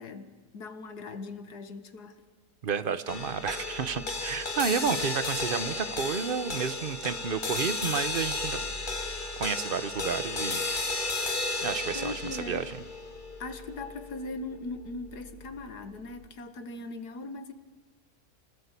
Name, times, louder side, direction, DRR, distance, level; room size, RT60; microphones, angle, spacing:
voice 1, 0.0-2.2 11.9-12.7 13.4-17.5, left 3 dB, 90° left, 9 dB, 2.1 m, -40 dB
voice 2, 2.6-8.6 9.4-10.6 11.6-12.7, right 6 dB, 40° right, 13 dB, 1.0 m, -31 dB
sound 1, 3.1-15.6, left 3 dB, 30° left, 2.1 m, -34 dB
26.5 x 19.5 x 8.3 m, 1.3 s
omnidirectional pair, 1.7 m